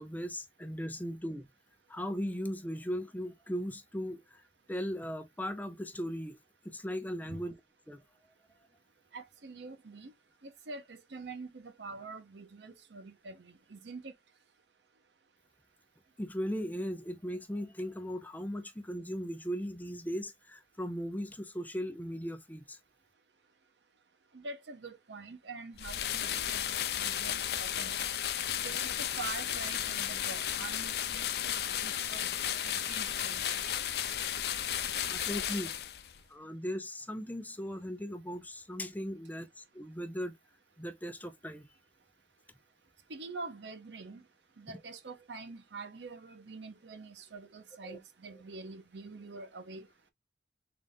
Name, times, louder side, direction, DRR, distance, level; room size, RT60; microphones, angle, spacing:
voice 1, 0.0-1.5 1.9-4.4 4.7-6.4 6.6-7.5 7.9-8.0 16.2-22.8 35.1-35.7 36.3-40.3 40.8-41.7 47.8-48.0, equal, 10° left, 0.5 m, -38 dB
voice 2, 9.1-10.1 10.4-14.1 24.3-28.1 28.5-34.0 43.1-44.2 44.6-49.9, right 3 dB, 80° right, 0.8 m, -46 dB
sound 1, 25.8-36.2, left 10 dB, 60° left, 0.5 m, -34 dB
3.9 x 2.4 x 3.5 m
head